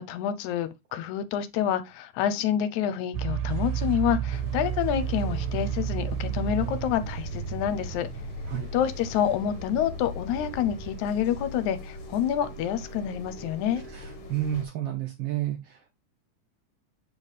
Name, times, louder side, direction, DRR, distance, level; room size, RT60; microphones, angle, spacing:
voice 1, 0.0-8.1 8.7-13.8, left 9 dB, 80° left, 2.0 m, -28 dB
sound 1, 3.1-11.0, right 9 dB, 90° right, 2.1 m, -32 dB
sound 2, 4.3-14.7, left 2 dB, 55° left, 1.9 m, -40 dB
voice 2, 13.9-15.9, right 12 dB, 75° right, 1.4 m, -31 dB
7.3 x 4.7 x 3.2 m
omnidirectional pair, 3.5 m